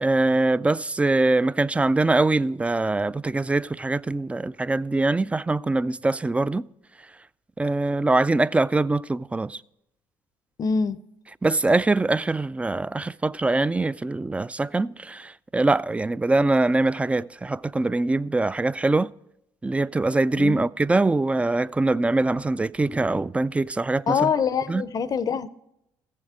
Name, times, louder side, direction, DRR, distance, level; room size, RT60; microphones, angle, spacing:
voice 1, 0.0-6.7 7.6-9.6 11.4-19.1 19.6-24.3 24.7-24.8, right 2 dB, 15° right, 0.3 m, -23 dB
voice 2, 10.6-11.0 20.4-20.7 24.1-25.5, left 6 dB, 45° left, 0.6 m, -24 dB
15.0 x 7.5 x 4.9 m
hypercardioid pair, 55°, 9 cm